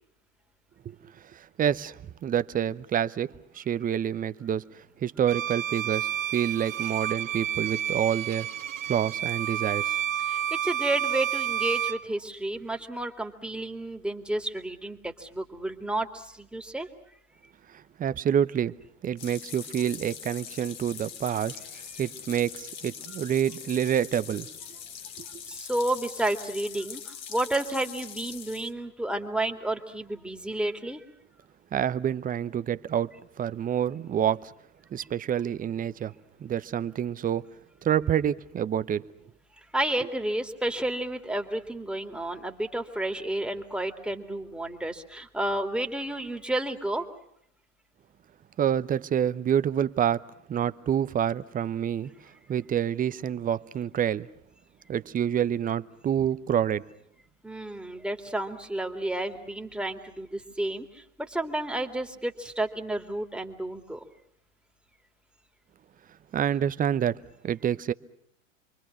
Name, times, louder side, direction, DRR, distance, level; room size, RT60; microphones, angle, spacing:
voice 1, 1.3-8.5 8.8-10.0 17.7-18.7 19.0-21.6 22.0-24.5 31.7-33.1 33.4-34.5 34.9-36.1 36.4-37.5 37.8-39.1 48.6-50.2 50.5-52.1 52.5-54.3 54.9-56.9 66.3-67.9, right 9 dB, 20° right, 0.9 m, -27 dB
Bowed string instrument, 5.3-12.1, right 10 dB, 80° right, 1.0 m, -30 dB
voice 2, 10.2-16.9 25.5-31.0 39.7-47.1 57.4-64.0, right 1 dB, ahead, 2.6 m, -31 dB
sound 1, 19.2-28.7, left 8 dB, 40° left, 2.3 m, -42 dB
28.5 x 23.5 x 6.1 m
hypercardioid pair, 95°, 38 cm